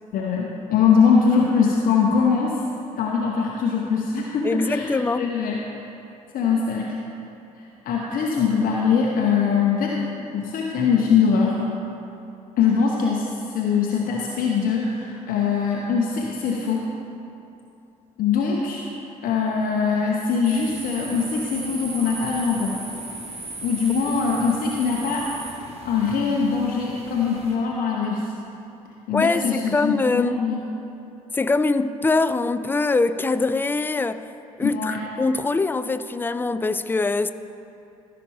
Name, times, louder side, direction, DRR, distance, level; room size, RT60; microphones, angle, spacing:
voice 1, 0.1-2.6 3.0-5.6 6.3-7.0 7.6-10.0 10.3-11.6 12.6-16.9 18.2-18.8 19.2-22.8 23.6-25.3 25.8-28.3 29.1-30.6 34.6-35.0, left 6 dB, 50° left, 0.9 m, -22 dB
voice 2, 4.4-5.3 29.1-30.4 31.3-34.3 34.6-37.3, left 3 dB, 10° left, 0.4 m, -23 dB
sound 1, 20.4-27.5, right 2 dB, 35° right, 1.6 m, -37 dB
14.5 x 5.8 x 3.5 m
figure-of-eight pair, 50°, 19 cm